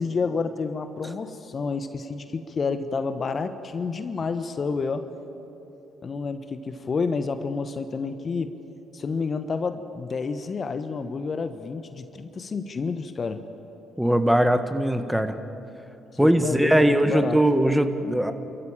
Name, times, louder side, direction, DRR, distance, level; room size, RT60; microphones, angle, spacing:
voice 1, 0.0-5.0 6.0-8.5 8.9-13.4 16.2-17.4, left 4 dB, 40° left, 10 dB, 1.2 m, -29 dB
voice 2, 14.0-15.3 16.2-18.3, right 1 dB, 5° right, 8 dB, 1.6 m, -20 dB
29.0 x 14.5 x 9.0 m, 3.0 s
hypercardioid pair, 50°, 0 cm